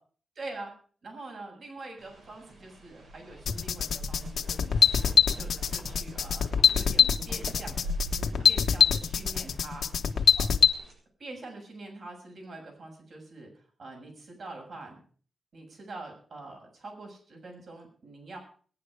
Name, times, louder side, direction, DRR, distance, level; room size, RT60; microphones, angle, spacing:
voice 1, 0.3-0.7 1.0-9.9 10.3-10.5 11.2-15.0 15.5-18.4, right 2 dB, 65° right, 2 dB, 6.8 m, -45 dB
sound 1, 2.0-10.9, equal, 85° right, 7.1 m, -42 dB
sound 2, 3.5-10.7, left 7 dB, 85° left, 1.5 m, -23 dB
20.5 x 11.0 x 4.9 m, 0.43 s
cardioid pair, 90°, 0 cm